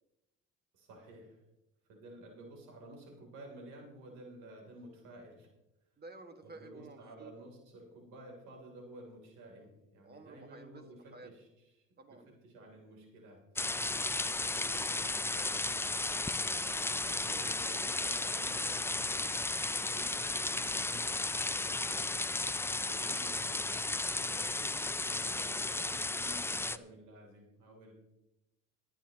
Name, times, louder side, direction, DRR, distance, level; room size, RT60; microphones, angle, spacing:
voice 1, 0.7-1.4 1.9-5.5 6.4-11.7 12.1-12.2 12.4-13.4 14.8-15.6 16.7-19.5 19.8-22.1 22.8-27.9, right 1 dB, 85° right, 1 dB, 3.4 m, -52 dB
voice 2, 6.0-7.3 10.0-11.3 12.0-12.3 14.3-15.1 15.3-15.6 22.6-22.8, right 3 dB, 35° right, 6 dB, 1.9 m, -53 dB
sound 1, 13.6-26.8, left 2 dB, 10° left, 0.4 m, -34 dB
22.0 x 8.8 x 3.0 m, 0.91 s
supercardioid pair, 80°, 30 cm